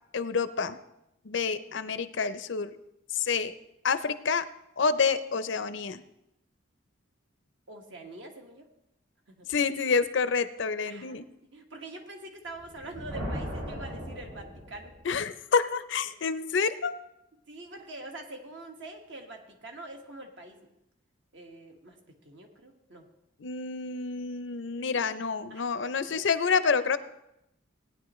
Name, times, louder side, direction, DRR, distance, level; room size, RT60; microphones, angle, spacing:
voice 1, 0.1-0.8 1.3-2.7 3.1-3.6 3.8-4.5 4.8-6.0 9.5-11.3 15.0-16.9 23.4-27.0, left 5 dB, 65° left, 13 dB, 0.5 m, -28 dB
voice 2, 7.7-8.6 9.3-9.5 10.8-14.9 17.5-20.7 21.3-22.0 22.2-23.1 25.5-26.2, right 2 dB, 60° right, 3 dB, 1.6 m, -45 dB
Thunder, 12.5-15.2, equal, 85° right, 4.8 m, -38 dB
17.0 x 9.7 x 3.1 m, 0.85 s
head